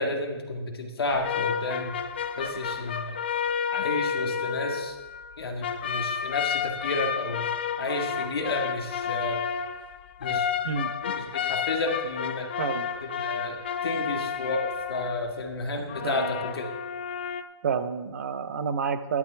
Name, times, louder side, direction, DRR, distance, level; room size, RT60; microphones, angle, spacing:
voice 1, 0.0-2.0 2.4-3.2 3.7-5.0 5.4-7.5 7.8-9.4 10.2-10.5 11.0-12.5 13.0-16.7, left 2 dB, 60° left, 3 dB, 1.8 m, -31 dB
sound 1, 1.1-5.4 5.6-15.5 15.9-17.4, left 7 dB, 25° left, 0.4 m, -31 dB
voice 2, 12.6-12.9 16.0-16.3 17.6-19.2, right 6 dB, 35° right, 10 dB, 0.7 m, -29 dB
11.5 x 11.5 x 3.4 m, 1.2 s
hypercardioid pair, 160°, 14 cm